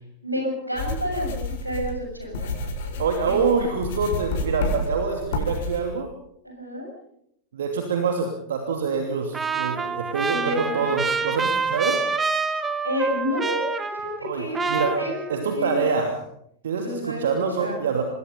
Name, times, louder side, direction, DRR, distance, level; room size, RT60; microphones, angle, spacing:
voice 1, 0.2-3.0 3.2-3.7 6.4-6.9 10.3-10.9 12.8-15.2 15.5-15.8 16.8-17.2 17.6-17.8, equal, 85° right, 1 dB, 7.4 m, -30 dB
sound 1, 0.7-5.8, left 2 dB, 55° left, 5.4 m, -30 dB
voice 2, 3.0-6.1 7.5-12.1 14.2-15.0 15.3-16.2 16.6-18.0, right 5 dB, 65° right, 4 dB, 2.8 m, -25 dB
Trumpet, 9.3-14.3 14.5-15.6, right 4 dB, 15° right, 1.6 m, -27 dB
26.5 x 20.5 x 5.6 m, 0.73 s
figure-of-eight pair, 90°, 0 cm